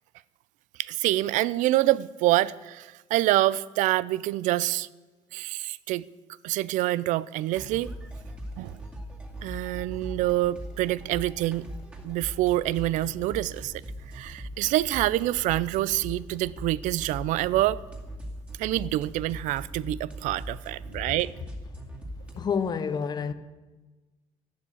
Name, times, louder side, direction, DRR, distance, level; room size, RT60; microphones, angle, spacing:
voice 1, 0.8-4.9 5.3-6.1 6.4-7.9 8.6-8.8 9.4-11.7 12.0-13.7 14.1-17.8 18.6-21.3, right 16 dB, 85° right, 0.5 m, -26 dB
sound 1, 7.5-22.3, equal, 10° right, 2.2 m, -40 dB
voice 2, 22.3-23.3, left 6 dB, 35° left, 0.9 m, -28 dB
12.5 x 11.5 x 8.4 m
cardioid pair, 150°, 13 cm